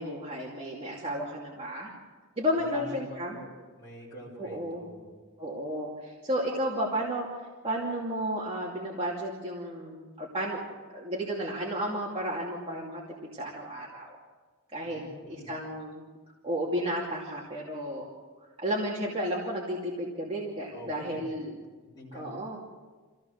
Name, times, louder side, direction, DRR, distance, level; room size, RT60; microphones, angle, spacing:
voice 1, 0.0-1.9 2.4-3.4 4.4-4.9 5.4-7.3 7.6-10.6 10.9-13.0 13.3-14.2 14.7-15.0 15.3-16.1 16.4-18.1 18.6-21.5 22.1-22.6, equal, 25° right, -5 dB, 2.6 m, -32 dB
voice 2, 2.6-5.1 14.8-15.5 20.7-21.4 21.8-22.4, left 1 dB, 20° left, -6 dB, 5.2 m, -45 dB
25.5 x 16.0 x 6.6 m, 1.4 s
head